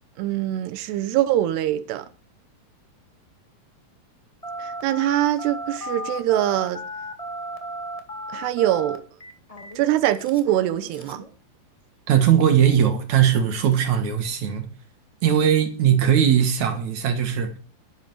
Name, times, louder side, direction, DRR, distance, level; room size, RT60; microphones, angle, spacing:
voice 1, 0.2-2.1 4.6-6.8 8.3-9.0 9.8-11.2, right 13 dB, 85° right, 3.0 m, -23 dB
Telephone, 4.4-11.3, right 1 dB, 55° left, 0.4 m, -35 dB
voice 2, 12.1-14.7 15.2-17.5, right 9 dB, 55° right, 2.4 m, -19 dB
12.0 x 8.5 x 7.6 m
omnidirectional pair, 4.7 m